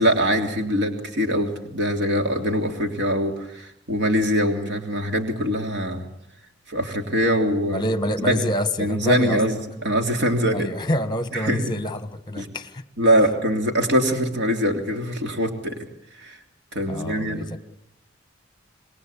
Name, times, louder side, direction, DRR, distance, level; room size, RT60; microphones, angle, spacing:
voice 1, 0.0-6.0 6.7-7.8 8.2-8.4 8.8-9.6 9.8-10.7 11.3-11.7 12.4-12.5 13.0-15.8 16.2-16.4 16.7-17.6, equal, 65° right, 4 dB, 3.2 m, -23 dB
voice 2, 7.7-9.4 10.5-12.8 16.9-17.6, left 1 dB, 25° left, 12 dB, 1.4 m, -27 dB
26.5 x 21.5 x 8.6 m, 0.79 s
head